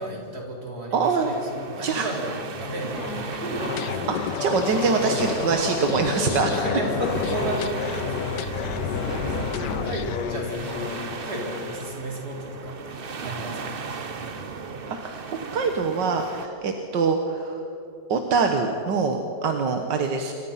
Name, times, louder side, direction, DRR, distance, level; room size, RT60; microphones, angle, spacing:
voice 1, 0.0-4.0 6.5-13.8, right 1 dB, 60° right, -1 dB, 4.8 m, -34 dB
voice 2, 0.9-1.3 1.8-2.1 4.1-6.5 15.0-15.2 15.5-17.6 18.1-20.3, right 4 dB, 85° right, 4 dB, 2.0 m, -24 dB
sound 1, 1.0-16.5, right 5 dB, 40° right, 1.1 m, -37 dB
Subway metro underground, 2.9-10.4, left 1 dB, 45° left, 5.0 m, -35 dB
sound 2, 3.6-11.9, left 9 dB, 80° left, 1.4 m, -31 dB
27.5 x 24.5 x 5.8 m, 2.9 s
omnidirectional pair, 1.8 m